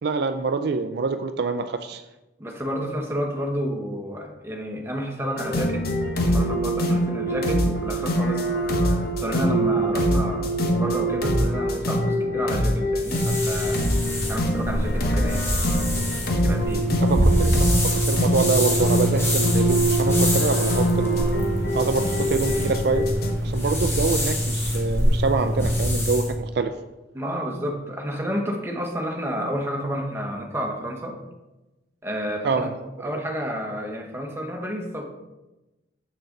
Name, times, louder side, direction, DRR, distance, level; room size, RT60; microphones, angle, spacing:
voice 1, 0.0-2.0 17.0-21.3 21.7-23.0 23.4-26.7 32.4-32.7, right 4 dB, 65° right, 9 dB, 0.4 m, -26 dB
voice 2, 2.4-5.9 6.1-8.5 9.2-13.8 14.3-15.5 16.4-16.8 27.1-31.2 32.0-32.7 33.0-35.0, equal, 15° right, 1 dB, 1.2 m, -30 dB
sound 1, 5.4-23.3, right 1 dB, 60° left, 1.1 m, -24 dB
sound 2, 13.0-26.3, equal, 15° left, 1.6 m, -24 dB
7.8 x 6.6 x 3.9 m, 1.0 s
head